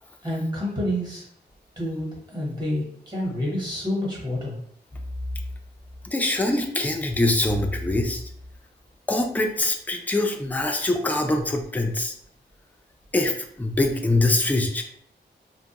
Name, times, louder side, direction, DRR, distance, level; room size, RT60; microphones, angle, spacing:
voice 1, 0.2-1.3 1.8-4.6, left 1 dB, 25° right, -4 dB, 1.1 m, -28 dB
voice 2, 6.1-8.2 9.1-12.1 13.1-14.8, left 2 dB, 10° left, 3 dB, 0.3 m, -23 dB
2.6 x 2.3 x 2.8 m, 0.67 s
wide cardioid pair, 150°, 18 cm